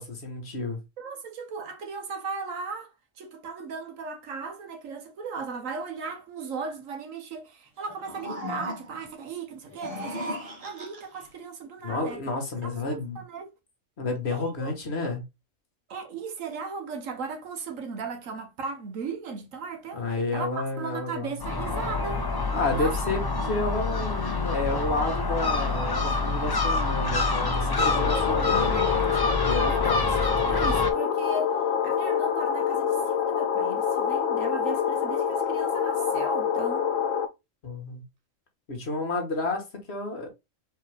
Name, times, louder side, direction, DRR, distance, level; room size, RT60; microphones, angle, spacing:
voice 1, 0.0-0.8 11.8-13.2 14.0-15.2 19.9-21.3 22.5-28.8 29.4-30.0 37.6-38.0 38.7-40.3, left 2 dB, 55° left, 1.5 m, -30 dB
voice 2, 1.0-12.2 12.6-13.5 14.3-14.7 15.9-20.0 20.3-22.3 22.7-23.0 23.4-23.5 27.6-31.6 31.8-36.9, right 4 dB, 80° right, 1.4 m, -37 dB
sound 1, 7.8-9.1 9.7-11.3, left 1 dB, 30° right, 1.4 m, -37 dB
Gull seagull, 21.4-30.9, left 3 dB, 30° left, 0.4 m, -27 dB
sound 2, 27.8-37.2, left 7 dB, 90° left, 1.1 m, -26 dB
4.6 x 3.5 x 3.3 m
omnidirectional pair, 1.3 m